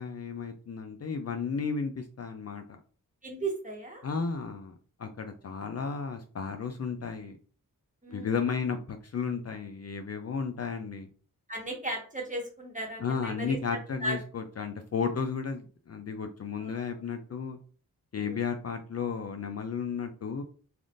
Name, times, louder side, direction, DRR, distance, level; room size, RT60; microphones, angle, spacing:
voice 1, 0.0-2.8 4.0-4.7 5.0-7.4 8.1-11.1 13.0-17.6 18.1-20.4, left 5 dB, 45° left, 5 dB, 0.4 m, -33 dB
voice 2, 3.2-4.0 8.0-8.4 11.5-13.6 14.0-14.2 16.6-16.8 18.2-18.5, right 2 dB, 20° right, 0 dB, 1.2 m, -36 dB
3.4 x 2.5 x 2.5 m, 0.39 s
cardioid pair, 50°, 36 cm